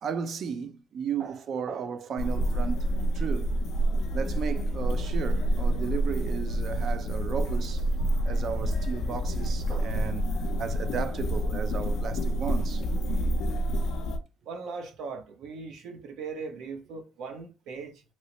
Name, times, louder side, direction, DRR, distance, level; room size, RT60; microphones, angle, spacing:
voice 1, 0.0-3.5 4.1-7.8 8.3-10.3 10.6-12.8, right 6 dB, 65° right, 0.4 m, -34 dB
sound 1, 2.2-14.2, right 1 dB, 85° left, 0.4 m, -28 dB
voice 2, 14.4-18.0, right 4 dB, 90° right, 0.8 m, -39 dB
3.0 x 3.0 x 2.8 m
cardioid pair, 90°, 0 cm